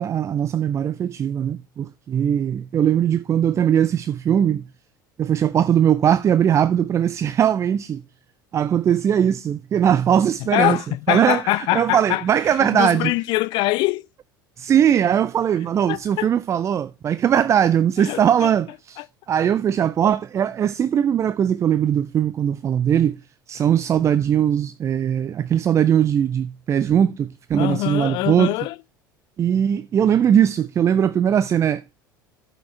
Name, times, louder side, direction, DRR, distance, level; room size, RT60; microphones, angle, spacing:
voice 1, 0.0-4.7 5.2-8.0 8.5-10.8 11.1-13.1 14.6-23.2 23.5-28.5 29.4-31.9, right 9 dB, 25° right, 0.4 m, -20 dB
voice 2, 10.5-12.2 12.6-14.1 15.9-16.3 18.1-18.5 19.0-19.1 27.6-28.7, left 19 dB, 45° left, 0.4 m, -23 dB
13.0 x 6.1 x 3.2 m
figure-of-eight pair, 70°, 11 cm